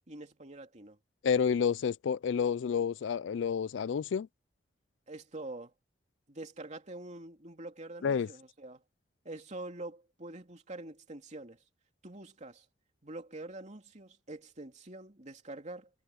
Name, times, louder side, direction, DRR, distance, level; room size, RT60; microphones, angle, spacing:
voice 1, 0.1-1.0 5.1-5.7 6.3-8.8 9.2-11.6 12.0-12.6 13.0-15.9, right 2 dB, 40° right, 2.9 m, -45 dB
voice 2, 1.2-4.3 8.0-8.3, left 7 dB, 75° left, 0.4 m, -29 dB
head